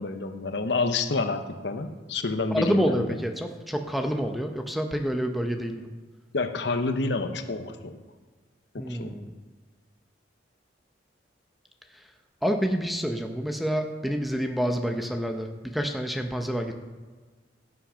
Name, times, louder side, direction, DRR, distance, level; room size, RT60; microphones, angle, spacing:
voice 1, 0.0-3.1 6.3-8.0 8.7-9.1, left 3 dB, 65° left, 7 dB, 0.9 m, -29 dB
voice 2, 2.5-5.9 8.8-9.3 12.4-16.7, equal, ahead, 5 dB, 0.7 m, -28 dB
16.5 x 5.9 x 5.0 m, 1.4 s
head